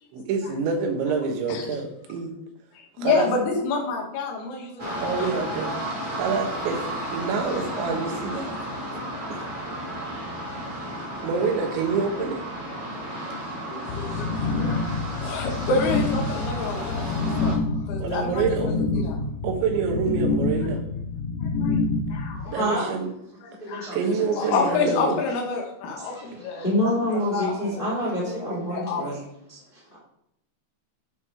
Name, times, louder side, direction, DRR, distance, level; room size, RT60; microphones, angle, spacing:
voice 1, 0.1-2.3 3.0-3.3 5.0-5.7 6.2-6.8 7.1-8.5 8.9-9.0 9.3-9.5 11.2-12.4 18.0-18.8 19.4-20.8 22.5-23.1 23.9-25.2, right 5 dB, 85° right, 3 dB, 3.7 m, -26 dB
voice 2, 3.0-5.3 13.3-13.4 13.7-14.9 15.2-18.8 19.0-19.2 21.4-21.8 22.1-22.6 23.4-23.9 24.3-26.7 27.3-29.0, left 4 dB, 65° left, 0 dB, 3.5 m, -29 dB
sound 1, 4.8-17.5, right 1 dB, 40° right, 0.6 m, -33 dB
sound 2, 13.9-22.4, left 3 dB, 90° left, 3.1 m, -27 dB
voice 3, 22.4-22.9 23.6-24.6 26.0-29.2 29.5-30.0, left 1 dB, 15° left, -6 dB, 2.1 m, -28 dB
10.5 x 6.3 x 3.7 m, 0.78 s
omnidirectional pair, 5.1 m